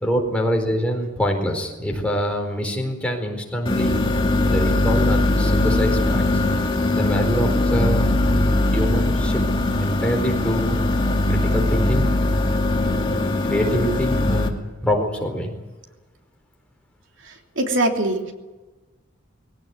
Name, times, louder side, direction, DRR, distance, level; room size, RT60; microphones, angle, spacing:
voice 1, 0.0-4.0 4.5-6.2 6.9-8.1 8.7-9.4 9.8-10.8 11.3-12.1 12.8-15.5, equal, 5° left, 1 dB, 4.3 m, -25 dB
sound 1, 3.7-14.5, left 2 dB, 25° left, 2.5 m, -20 dB
voice 2, 17.2-18.3, right 1 dB, 75° right, 3 dB, 3.1 m, -23 dB
22.0 x 17.5 x 9.5 m, 1.2 s
head